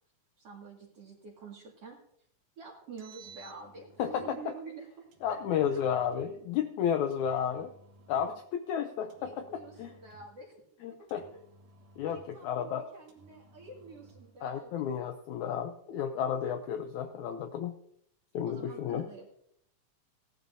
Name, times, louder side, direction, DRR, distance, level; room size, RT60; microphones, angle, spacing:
voice 1, 0.4-2.0 2.6-6.0 9.2-10.6 11.0-11.2 12.1-14.9 18.4-19.3, right 4 dB, 50° right, -4 dB, 3.0 m, -48 dB
Engine, 2.8-4.3 5.1-6.3 7.1-8.4 9.1-10.4 11.1-12.4 13.1-14.3, right 3 dB, 65° right, 2.7 m, -57 dB
voice 2, 4.0-4.4 5.2-7.7 8.1-9.9 10.8-11.2 12.0-12.9 14.4-17.8 18.3-19.1, left 8 dB, 75° left, 7 dB, 1.8 m, -32 dB
17.5 x 11.5 x 2.7 m, 0.69 s
omnidirectional pair, 3.9 m